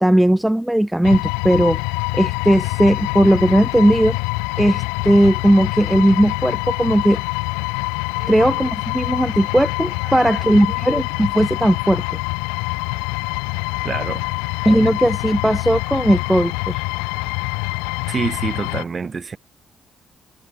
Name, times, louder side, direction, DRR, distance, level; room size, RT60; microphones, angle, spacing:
voice 1, 0.0-1.8 2.1-4.2 4.6-7.2 8.3-12.0 14.6-16.8, right 1 dB, 10° right, 0.8 m, -17 dB
sound 1, 1.0-18.8, left 34 dB, 90° left, 0.5 m, -25 dB
voice 2, 13.8-14.3 18.1-19.4, right 5 dB, 45° right, 1.3 m, -27 dB
hypercardioid pair, 50°, 0 cm